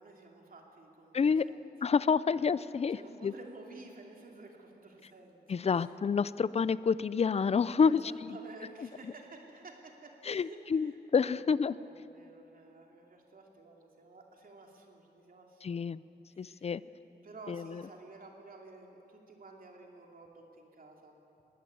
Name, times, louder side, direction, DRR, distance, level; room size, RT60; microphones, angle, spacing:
voice 1, 0.0-1.6 2.9-5.9 7.8-11.0 11.2-15.8 16.3-16.7 17.2-21.2, right 3 dB, 50° right, 1 dB, 2.8 m, -52 dB
voice 2, 1.1-1.5 1.8-3.3 5.5-8.3 10.2-11.7 15.6-16.0 16.4-16.8 17.5-17.8, left 6 dB, 35° left, 17 dB, 0.5 m, -29 dB
21.5 x 16.5 x 9.3 m, 2.9 s
wide cardioid pair, 145°, 18 cm